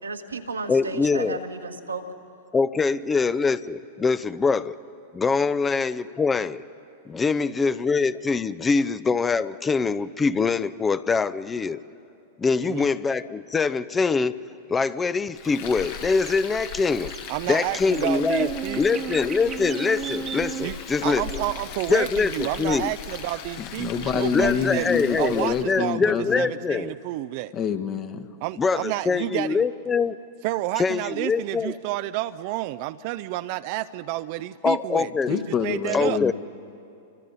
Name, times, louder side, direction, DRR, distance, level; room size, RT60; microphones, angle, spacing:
voice 1, 0.0-2.0, right 3 dB, 85° right, 3 dB, 1.7 m, -33 dB
voice 2, 0.7-1.4 2.5-4.7 5.1-6.6 7.1-11.8 12.4-14.3 14.7-17.1 17.5-18.5 18.8-21.3 21.9-22.9 24.3-26.9 28.6-30.2 30.8-31.8 34.6-35.3 35.9-36.3, left 4 dB, 15° left, 15 dB, 0.6 m, -24 dB
Frying (food), 15.4-25.7, left 9 dB, 55° left, 1.4 m, -39 dB
Buzz, 15.6-25.6, right 8 dB, 25° right, 1.1 m, -38 dB
voice 3, 17.3-19.0 20.6-24.9 25.2-27.5 28.4-29.6 30.4-36.2, right 16 dB, 50° right, 11 dB, 0.5 m, -30 dB
voice 4, 23.6-26.4 27.5-28.3 35.3-36.3, left 7 dB, 35° left, 7 dB, 1.3 m, -27 dB
30.0 x 24.5 x 4.1 m, 2.5 s
figure-of-eight pair, 95°, 0 cm